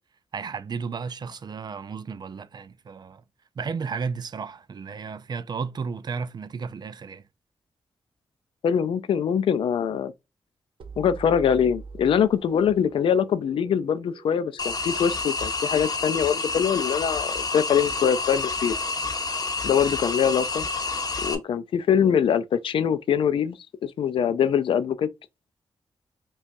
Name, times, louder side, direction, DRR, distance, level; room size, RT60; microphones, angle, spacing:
voice 1, 0.3-3.2 3.6-7.2, right 5 dB, 55° right, 0.4 m, -33 dB
voice 2, 8.6-10.1 11.0-18.7 19.6-20.7 21.2-25.1, left 8 dB, 85° left, 0.4 m, -23 dB
sound 1, 10.8-15.5, right 4 dB, 75° right, 0.8 m, -44 dB
sound 2, 14.6-21.3, left 4 dB, 45° left, 0.8 m, -29 dB
5.2 x 2.3 x 2.6 m
cardioid pair, 65°, 9 cm